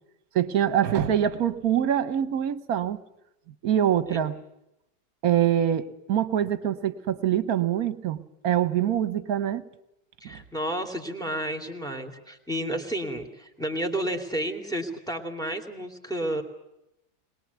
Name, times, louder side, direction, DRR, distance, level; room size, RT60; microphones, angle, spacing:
voice 1, 0.3-3.0 3.6-4.4 5.2-9.6 10.2-10.4, right 10 dB, 60° right, 13 dB, 1.4 m, -24 dB
voice 2, 10.2-16.4, right 1 dB, ahead, 5 dB, 2.5 m, -31 dB
22.0 x 21.0 x 8.2 m, 0.86 s
omnidirectional pair, 1.8 m